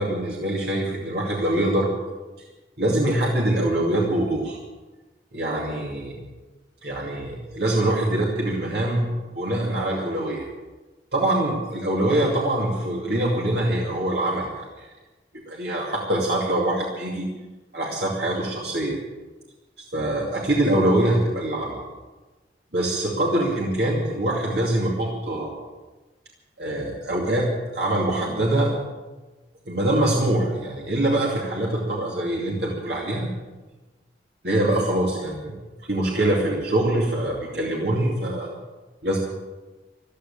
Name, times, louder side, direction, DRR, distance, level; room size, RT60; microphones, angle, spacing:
voice 1, 0.0-1.9 2.8-4.6 5.3-6.2 6.8-10.5 11.1-14.9 15.5-17.3 17.7-19.0 19.9-21.8 22.7-25.5 26.6-28.7 29.7-33.3 34.4-35.6 35.9-38.5 39.0-39.2, right 1 dB, 65° right, -3 dB, 2.6 m, -24 dB
14.5 x 12.5 x 7.3 m, 1.2 s
head